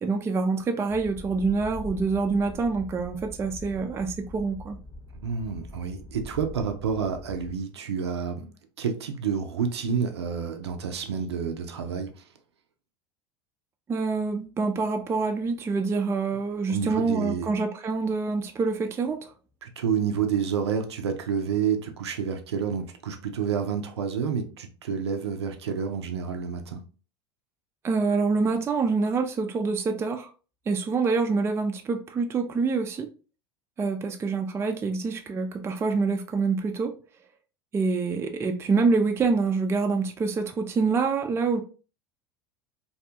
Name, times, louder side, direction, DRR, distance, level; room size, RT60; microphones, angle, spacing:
voice 1, 0.0-4.8 13.9-19.3 27.8-30.3 30.7-33.1 33.8-37.0 37.7-41.6, right 4 dB, 20° right, 0.3 m, -26 dB
sound 1, 0.9-7.5, left 1 dB, 30° left, 0.8 m, -43 dB
voice 2, 5.2-12.3 16.7-17.5 19.6-26.8, right 7 dB, 90° right, 0.4 m, -29 dB
2.6 x 2.2 x 2.7 m
hypercardioid pair, 85°, 14 cm